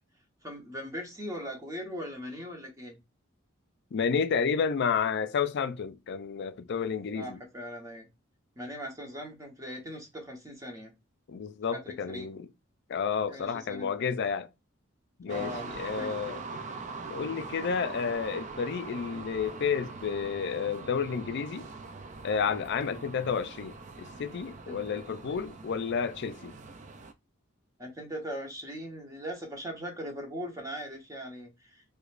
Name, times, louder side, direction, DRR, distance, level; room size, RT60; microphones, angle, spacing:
voice 1, 0.4-3.0 7.1-8.1 8.6-10.9 11.7-12.3 13.2-14.1 15.3-15.7 16.0-16.1 24.7-24.8 27.8-31.8, equal, 15° right, 1.0 m, -40 dB
voice 2, 3.9-7.4 11.3-12.5 12.9-14.5 15.2-16.4 17.1-21.7 22.2-26.5, left 6 dB, 55° left, 0.4 m, -31 dB
sound 1, 15.3-27.1, right 3 dB, 35° right, 0.4 m, -42 dB
4.9 x 2.2 x 2.5 m
head